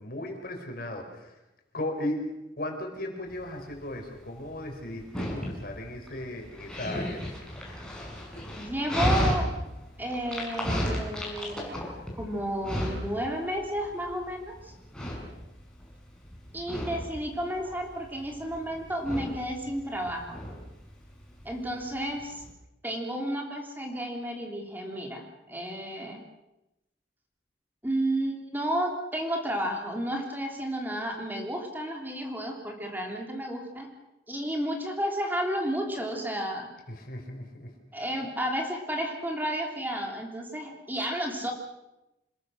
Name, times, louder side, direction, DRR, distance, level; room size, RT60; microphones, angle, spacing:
voice 1, 0.0-1.4 1.7-2.3 2.6-7.2 36.9-37.7, left 1 dB, 55° left, 3 dB, 5.1 m, -36 dB
Dog, 3.3-22.5, equal, 5° left, 6.2 m, -34 dB
voice 2, 8.5-9.5 10.0-14.7 16.5-20.4 21.4-22.4 22.8-26.2 27.8-33.9 34.3-36.7 37.9-41.5, right 1 dB, 10° right, 1 dB, 3.3 m, -32 dB
27.5 x 21.0 x 6.5 m, 0.93 s
head